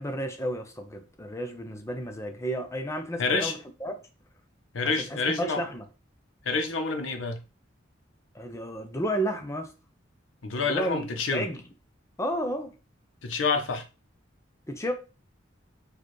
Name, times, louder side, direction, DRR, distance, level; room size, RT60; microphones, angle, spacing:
voice 1, 0.0-4.0 5.1-5.8 8.3-9.7 10.6-11.6 12.2-12.7 14.7-14.9, equal, 15° left, 0.5 m, -32 dB
voice 2, 3.2-3.6 4.7-5.6 6.4-7.4 10.4-11.5 13.2-13.8, left 4 dB, 85° left, 0.7 m, -28 dB
4.4 x 2.3 x 3.1 m
head